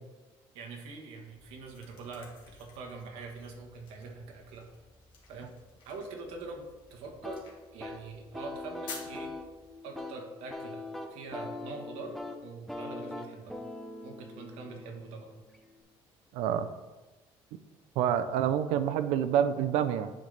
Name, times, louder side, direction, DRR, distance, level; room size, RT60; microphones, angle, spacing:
voice 1, 0.5-4.7 5.3-5.5 5.8-6.6 6.9-7.4 7.7-9.3 9.8-10.8 11.1-13.6 14.0-15.4, right 3 dB, 70° right, 2 dB, 1.3 m, -44 dB
sound 1, 1.2-9.7, left 4 dB, 50° left, 1.7 m, -52 dB
sound 2, 7.2-15.8, left 2 dB, ahead, 0.5 m, -42 dB
voice 2, 16.3-16.7 18.0-20.1, right 9 dB, 90° right, 11 dB, 0.5 m, -27 dB
10.0 x 3.9 x 3.3 m, 1.1 s
cardioid pair, 170°, 10 cm